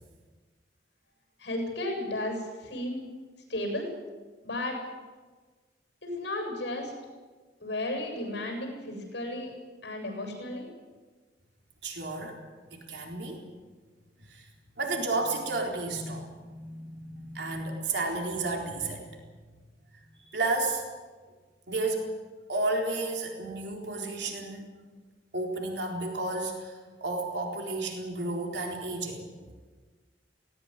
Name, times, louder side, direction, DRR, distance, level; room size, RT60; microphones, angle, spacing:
voice 1, 1.4-3.1 3.5-3.9 4.4-4.8 6.0-6.9 7.6-9.5 9.8-10.7, left 1 dB, 70° left, 3 dB, 7.6 m, -33 dB
voice 2, 11.8-12.4 12.9-13.4 14.3-14.5 14.8-19.1 20.2-20.8 21.7-22.1 22.5-24.7 25.3-29.5, right 2 dB, 70° right, 1 dB, 4.1 m, -32 dB
18.5 x 18.5 x 9.9 m, 1.4 s
head